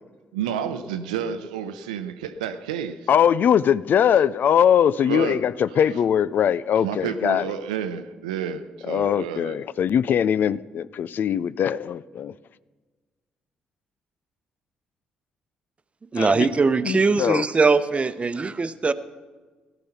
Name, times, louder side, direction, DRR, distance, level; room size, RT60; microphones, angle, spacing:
voice 1, 0.3-3.1 5.0-5.4 6.8-9.6, right 8 dB, 85° right, 10 dB, 0.7 m, -30 dB
voice 2, 3.1-7.4 8.9-12.3 16.2-16.5 16.8-17.4, left 8 dB, 55° left, 19 dB, 0.4 m, -21 dB
voice 3, 16.1-18.9, right 4 dB, 30° right, 13 dB, 0.9 m, -21 dB
17.0 x 12.0 x 5.7 m, 1.3 s
hypercardioid pair, 45°, 4 cm